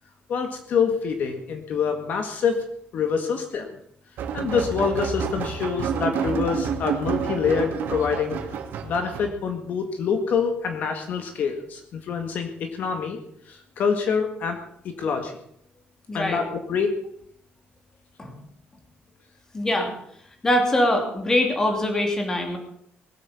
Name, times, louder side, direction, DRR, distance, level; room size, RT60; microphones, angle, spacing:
voice 1, 0.3-2.6 2.9-3.7 4.3-8.4 8.8-13.2 13.5-15.4 16.1-16.9, left 6 dB, 55° left, 5 dB, 1.9 m, -26 dB
sound 1, 4.2-9.3, right 7 dB, 70° right, 2.3 m, -29 dB
voice 2, 16.1-16.4 18.2-18.4 19.5-19.9 20.4-22.6, left 1 dB, 15° left, 3 dB, 2.8 m, -23 dB
20.5 x 8.4 x 7.2 m, 0.71 s
cardioid pair, 175°, 4 cm